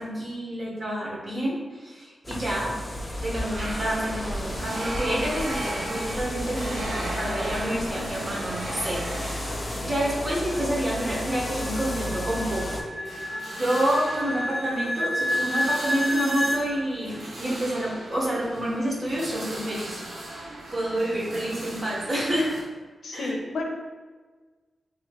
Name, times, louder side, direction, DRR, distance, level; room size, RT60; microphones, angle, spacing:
voice 1, 0.0-2.8 3.2-12.8 13.5-20.3 20.7-22.5 23.1-23.3, right 1 dB, 40° right, -5 dB, 1.0 m, -28 dB
sound 1, 2.2-12.8, left 1 dB, 25° left, 0.4 m, -33 dB
sound 2, 3.5-22.6, right 1 dB, 80° right, 0.7 m, -37 dB
voice 2, 7.6-8.1 23.0-23.7, left 2 dB, 75° left, 1 dB, 0.5 m, -33 dB
sound 3, 9.4-16.6, equal, 60° right, 1.4 m, -30 dB
2.9 x 2.8 x 2.8 m, 1.4 s
wide cardioid pair, 95°, 0 cm